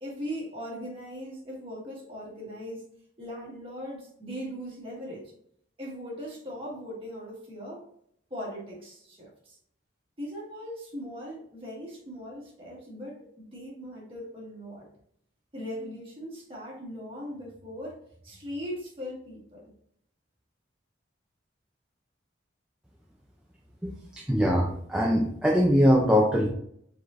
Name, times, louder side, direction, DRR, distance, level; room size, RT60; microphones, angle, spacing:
voice 1, 0.0-2.9 3.2-5.3 5.8-7.8 8.3-9.6 10.2-14.9 15.5-19.7, equal, 30° right, -4 dB, 1.7 m, -39 dB
voice 2, 23.8-26.5, equal, 5° right, -2 dB, 0.4 m, -22 dB
4.7 x 4.0 x 2.5 m, 0.67 s
head